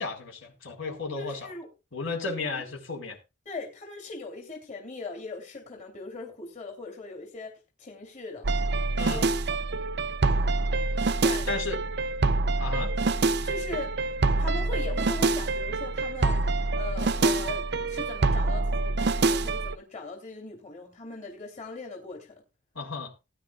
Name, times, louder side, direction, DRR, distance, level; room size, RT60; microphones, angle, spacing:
voice 1, 0.0-1.4 1.9-3.2 9.0-9.2 11.5-11.8 12.6-12.9 22.7-23.1, left 4 dB, 75° left, 4.6 m, -33 dB
voice 2, 1.2-1.7 2.4-2.5 3.4-8.5 9.1-9.6 11.2-11.5 12.7-13.1 13.4-14.0 14.4-16.4 16.7-22.4, left 3 dB, 35° left, 2.9 m, -40 dB
sound 1, 8.4-19.8, right 3 dB, 50° right, 0.6 m, -26 dB
18.5 x 10.5 x 2.4 m
head